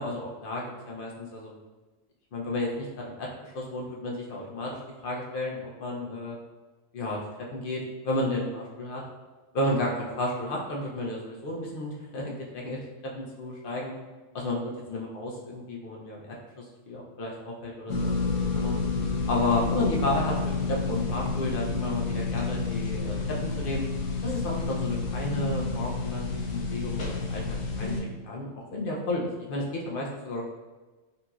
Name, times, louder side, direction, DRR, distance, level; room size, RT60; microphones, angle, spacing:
voice 1, 0.0-1.6 2.3-6.4 6.9-7.2 7.5-9.0 9.5-14.0 14.3-18.1 18.5-18.8 19.3-23.9 24.2-30.5, left 1 dB, 55° left, -2 dB, 0.7 m, -32 dB
sound 1, 17.9-28.0, left 4 dB, 75° left, 1.0 m, -29 dB
4.0 x 2.9 x 2.3 m, 1.2 s
omnidirectional pair, 1.4 m